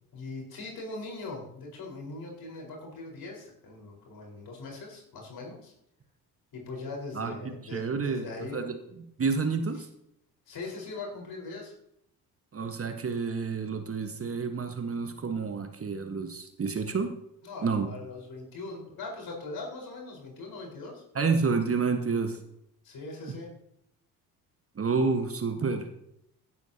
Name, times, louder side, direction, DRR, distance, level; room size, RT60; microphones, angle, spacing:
voice 1, 0.1-5.7 6.5-8.6 10.5-11.7 17.4-21.0 22.8-23.5, left 3 dB, 50° left, -1 dB, 4.7 m, -40 dB
voice 2, 7.7-9.9 12.5-17.2 17.6-17.9 21.1-22.4 23.3-23.4 24.7-25.9, right 4 dB, 30° right, 6 dB, 1.4 m, -29 dB
16.0 x 12.0 x 2.9 m, 0.78 s
figure-of-eight pair, 50°, 47 cm